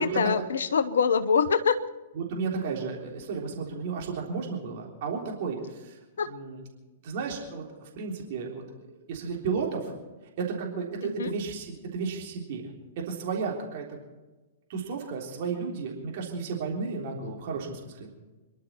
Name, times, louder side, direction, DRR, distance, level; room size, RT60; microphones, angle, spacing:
voice 1, 0.0-1.8 6.2-6.3 11.0-11.3, left 6 dB, 65° left, 12 dB, 0.8 m, -24 dB
voice 2, 2.1-6.0 6.3-6.6 7.0-9.9 10.4-12.7 13.0-13.9 14.7-18.1, right 5 dB, 45° right, -1 dB, 3.5 m, -33 dB
27.5 x 11.5 x 4.5 m, 1.2 s
figure-of-eight pair, 105°, 0 cm